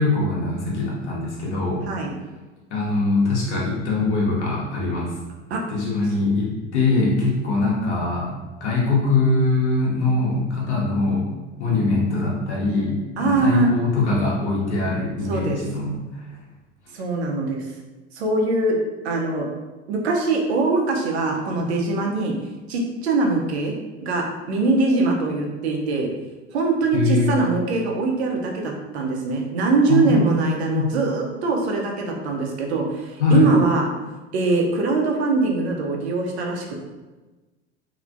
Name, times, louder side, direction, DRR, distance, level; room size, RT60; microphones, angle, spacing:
voice 1, 0.0-1.8 2.7-5.1 5.7-8.3 8.6-11.3 11.6-16.3 16.9-17.0 26.9-27.4 29.9-30.9 33.2-33.5, left 3 dB, 75° left, -5 dB, 1.1 m, -22 dB
voice 2, 13.2-13.7 15.3-15.6 16.9-17.6 18.1-18.8 19.0-19.5 19.9-22.3 22.7-23.7 24.0-26.1 26.5-33.9 34.3-36.8, right 3 dB, 70° right, 0 dB, 0.8 m, -22 dB
3.2 x 2.9 x 2.6 m, 1.2 s
figure-of-eight pair, 80°, 34 cm